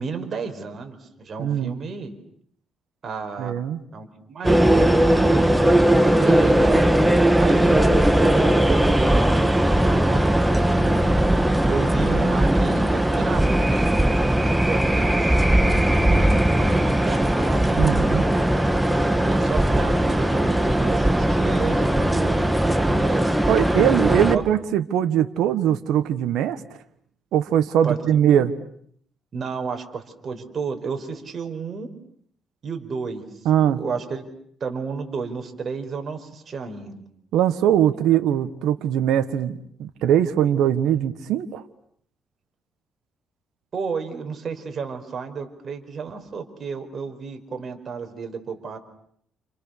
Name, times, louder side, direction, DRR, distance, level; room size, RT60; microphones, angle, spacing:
voice 1, 0.0-2.1 3.0-3.5 3.9-5.5 6.0-11.3 11.7-18.5 19.2-23.4 23.8-24.4 27.8-28.0 28.3-28.5 29.3-31.9 32.6-33.3 33.6-34.3 34.6-37.0 43.7-48.8, right 5 dB, 50° right, 5 dB, 5.2 m, -32 dB
voice 2, 1.4-1.7 3.4-3.8 7.7-7.8 17.8-18.2 23.5-26.6 27.3-28.5 33.4-33.8 37.3-41.6, right 10 dB, 85° right, 9 dB, 1.5 m, -21 dB
sound 1, 4.4-24.4, right 1 dB, 5° right, 2.1 m, -19 dB
29.5 x 29.5 x 6.8 m, 0.65 s
cardioid pair, 90°, 0 cm